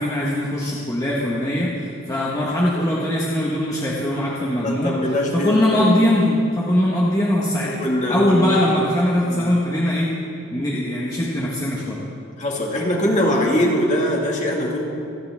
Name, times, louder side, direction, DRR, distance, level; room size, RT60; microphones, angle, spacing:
voice 1, 0.0-4.9 5.3-7.7 8.1-10.1 10.5-12.0, left 1 dB, 15° left, -6 dB, 1.5 m, -21 dB
voice 2, 4.6-5.9 7.8-8.6 9.3-9.6 12.4-14.9, equal, 35° left, -1 dB, 2.1 m, -22 dB
27.5 x 10.0 x 3.6 m, 2.6 s
head